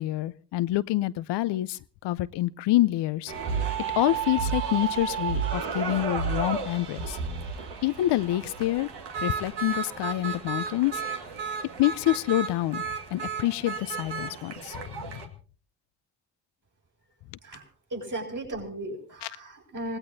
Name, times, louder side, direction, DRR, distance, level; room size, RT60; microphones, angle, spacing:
voice 1, 0.0-3.3 4.0-7.2 7.8-8.9 9.2-11.0 11.8-12.8 13.1-15.2, left 15 dB, 75° left, 17 dB, 0.7 m, -27 dB
sound 1, 3.3-15.3, right 6 dB, 75° right, 2.1 m, -32 dB
voice 2, 17.4-20.0, right 1 dB, 45° right, 1 dB, 6.9 m, -36 dB
27.0 x 18.5 x 2.8 m, 0.39 s
hypercardioid pair, 40°, 41 cm